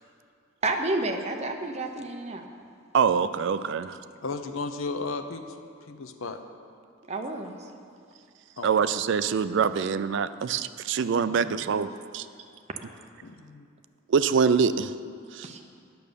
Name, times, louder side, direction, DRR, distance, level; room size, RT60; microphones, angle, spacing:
voice 1, 0.6-2.4 7.1-7.5 15.4-15.6, right 2 dB, 30° right, 4 dB, 0.7 m, -30 dB
voice 2, 2.9-4.0 8.6-12.3 14.1-14.9 15.3-15.5, right 6 dB, 60° right, 13 dB, 0.4 m, -24 dB
voice 3, 4.2-5.4 5.9-6.4 8.6-8.7 11.2-11.6 13.2-13.7, left 3 dB, 75° left, 7 dB, 0.7 m, -35 dB
9.3 x 6.7 x 6.8 m, 2.3 s
head